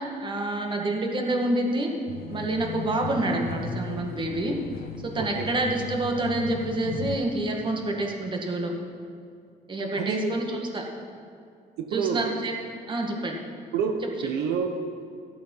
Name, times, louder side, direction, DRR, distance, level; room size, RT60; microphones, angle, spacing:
voice 1, 0.2-1.9 2.3-4.6 5.0-8.7 9.7-10.8 11.9-12.5 12.9-13.4 14.0-14.1, right 2 dB, 30° right, 1 dB, 1.9 m, -27 dB
sound 1, 2.1-7.2, left 6 dB, 60° left, 1.1 m, -36 dB
voice 2, 5.2-5.5 10.0-10.3 11.8-12.3 13.7-14.7, right 6 dB, 80° right, 5 dB, 0.9 m, -28 dB
14.5 x 8.4 x 5.5 m, 2.4 s
cardioid pair, 110°, 17 cm